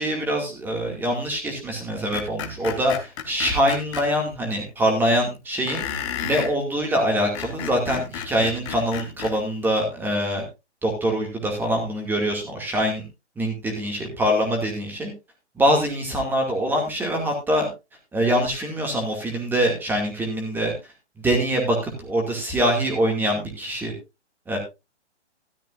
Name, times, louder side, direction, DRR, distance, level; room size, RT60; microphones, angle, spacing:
voice 1, 0.0-5.8 6.2-10.4 10.8-13.1 13.4-15.1 15.5-17.7 18.1-20.7 21.2-23.9 24.5-24.6, equal, 5° right, 2 dB, 2.4 m, -24 dB
Screech, 2.1-4.1 5.7-6.5 7.2-9.4, left 9 dB, 25° left, 1.5 m, -32 dB
13.5 x 11.5 x 2.6 m, 0.25 s
hypercardioid pair, 150°, 36 cm